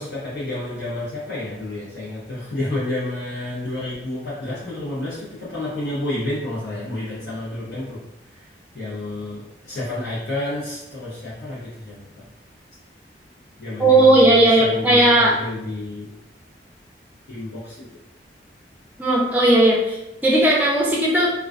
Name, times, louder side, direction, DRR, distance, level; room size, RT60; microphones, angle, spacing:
voice 1, 0.0-8.0 8.3-12.3 13.6-16.1 17.3-18.0, left 1 dB, 60° left, -11 dB, 0.7 m, -30 dB
voice 2, 13.8-15.4 19.0-21.3, right 1 dB, 10° right, -4 dB, 0.5 m, -16 dB
2.3 x 2.2 x 2.4 m, 0.88 s
head